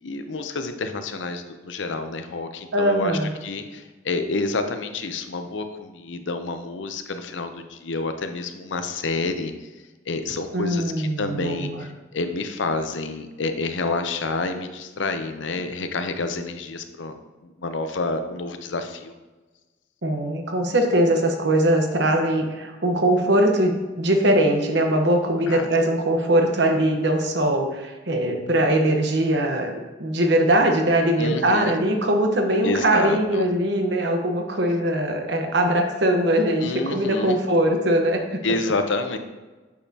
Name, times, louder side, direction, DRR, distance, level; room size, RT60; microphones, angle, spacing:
voice 1, 0.0-9.5 10.1-17.2 17.4-19.1 25.5-25.7 31.2-31.8 32.6-33.4 36.6-37.4 38.4-39.2, left 3 dB, 75° left, 8 dB, 0.7 m, -28 dB
voice 2, 2.7-3.3 10.5-11.8 20.0-29.7 30.0-38.4, right 1 dB, 60° right, 3 dB, 1.1 m, -21 dB
8.5 x 6.4 x 2.8 m, 1.2 s
head